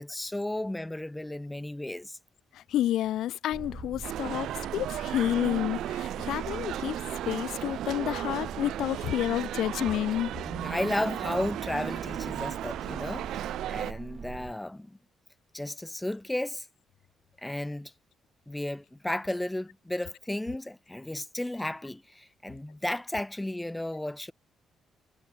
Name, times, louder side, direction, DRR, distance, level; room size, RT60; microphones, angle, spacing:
voice 1, 0.0-2.2 10.4-15.0 15.5-16.7 17.4-17.9 18.5-24.3, left 1 dB, 10° left, 0.4 m, -34 dB
voice 2, 2.5-7.0 7.3-10.3, left 13 dB, 80° left, 0.4 m, -30 dB
sound 1, 3.5-14.5, right 6 dB, 45° right, 1.4 m, -42 dB
sound 2, 4.0-13.9, right 12 dB, 80° right, 1.1 m, -35 dB
cardioid pair, 90°, 0 cm